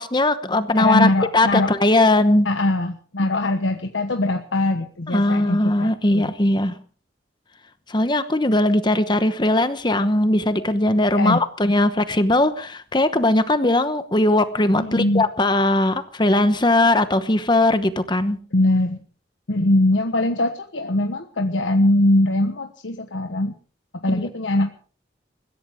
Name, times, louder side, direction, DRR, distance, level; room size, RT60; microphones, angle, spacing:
voice 1, 0.0-2.5 5.1-6.8 7.9-18.4 24.1-24.3, left 1 dB, 25° left, 11 dB, 1.0 m, -19 dB
voice 2, 0.7-1.7 2.4-6.3 11.1-11.4 14.8-15.3 18.5-19.0 19.5-23.5 23.9-24.7, left 1 dB, 85° left, 6 dB, 1.3 m, -21 dB
21.0 x 16.5 x 3.6 m, 0.40 s
head